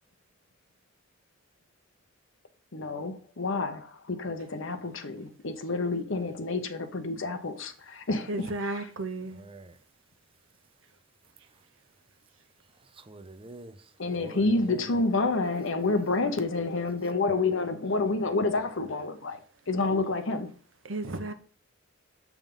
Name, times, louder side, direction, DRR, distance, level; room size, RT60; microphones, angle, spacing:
voice 1, 2.7-8.9 14.0-19.4 19.7-20.5, left 3 dB, 65° left, 1.0 m, -29 dB
voice 2, 8.3-9.4 20.8-21.3, right 2 dB, 65° right, 0.9 m, -33 dB
voice 3, 9.3-9.8 12.9-13.8 14.1-14.9, right 2 dB, 25° right, 0.6 m, -46 dB
7.3 x 3.6 x 5.4 m
head